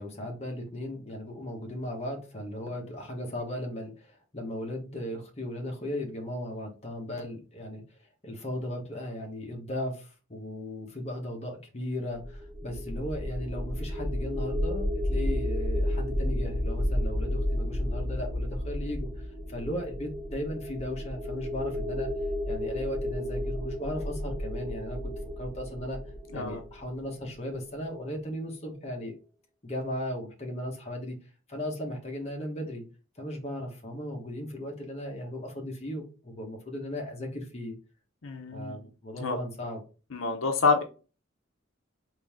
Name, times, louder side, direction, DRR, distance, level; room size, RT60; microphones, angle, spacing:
voice 1, 0.0-7.8 8.2-19.1 19.5-22.1 22.5-26.0 26.3-29.2 29.6-31.2 31.5-32.8 33.2-37.7 38.5-39.8, left 1 dB, 35° left, 1 dB, 1.1 m, -36 dB
sound 1, 12.2-27.2, left 1 dB, 40° right, 1.1 m, -32 dB
voice 2, 38.2-38.8 39.2-39.4 40.1-40.8, left 4 dB, 85° left, 5 dB, 0.7 m, -27 dB
3.9 x 2.7 x 3.5 m, 0.34 s
head